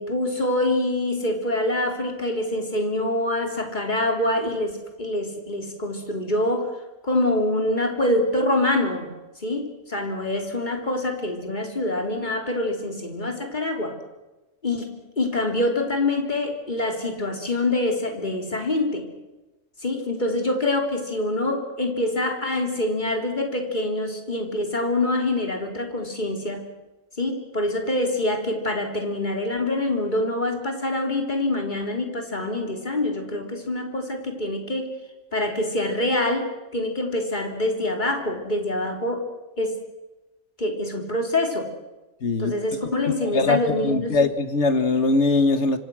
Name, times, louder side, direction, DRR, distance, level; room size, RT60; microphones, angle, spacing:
voice 1, 0.0-6.7 7.0-9.1 9.4-13.9 14.6-19.1 19.8-26.6 27.2-34.9 35.3-39.3 39.6-39.8 40.6-41.7 42.4-44.2, left 1 dB, 35° left, 3 dB, 3.7 m, -25 dB
voice 2, 42.2-42.5 43.3-45.8, left 3 dB, 60° left, 10 dB, 2.0 m, -21 dB
26.5 x 26.0 x 6.3 m, 1.1 s
omnidirectional pair, 1.4 m